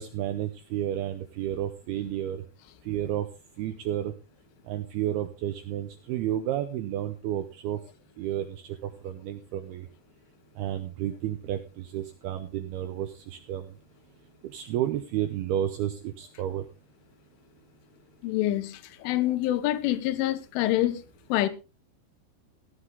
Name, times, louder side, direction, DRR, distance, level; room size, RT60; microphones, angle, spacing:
voice 1, 0.0-2.4 2.9-3.3 3.6-4.1 4.7-7.8 8.2-9.9 10.6-13.7 14.4-16.7, right 11 dB, 80° right, 2.3 m, -31 dB
voice 2, 18.2-21.0 21.3-21.5, left 14 dB, 85° left, 3.5 m, -26 dB
15.5 x 9.7 x 3.7 m
omnidirectional pair, 5.5 m